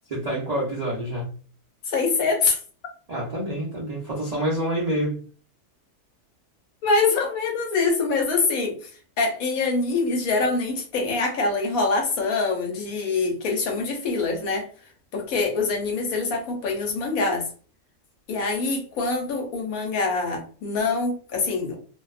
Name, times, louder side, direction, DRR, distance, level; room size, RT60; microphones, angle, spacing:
voice 1, 0.1-1.3 3.1-5.2, right 1 dB, 55° right, -5 dB, 0.4 m, -27 dB
voice 2, 1.9-2.6 6.8-8.8 9.2-14.7 15.1-17.5 18.3-21.8, left 3 dB, 70° left, 2 dB, 1.1 m, -24 dB
2.6 x 2.2 x 2.4 m, 0.41 s
omnidirectional pair, 1.6 m